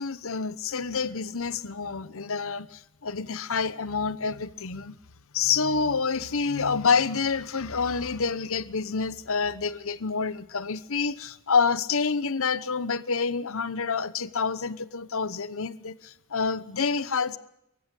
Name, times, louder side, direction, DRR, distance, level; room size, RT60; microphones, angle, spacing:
voice 1, 0.0-5.0 5.3-17.4, left 5 dB, 70° left, 1.0 m, -28 dB
24.5 x 15.0 x 8.3 m
head